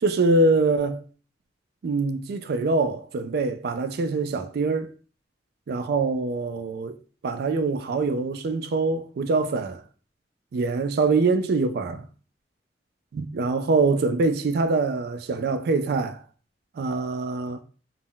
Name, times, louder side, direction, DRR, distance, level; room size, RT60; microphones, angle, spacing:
voice 1, 0.0-1.0 1.8-4.9 5.7-7.0 7.2-9.8 10.5-12.0 13.1-16.2 16.8-17.6, right 3 dB, 60° right, 0.3 m, -24 dB
2.1 x 2.0 x 3.7 m
head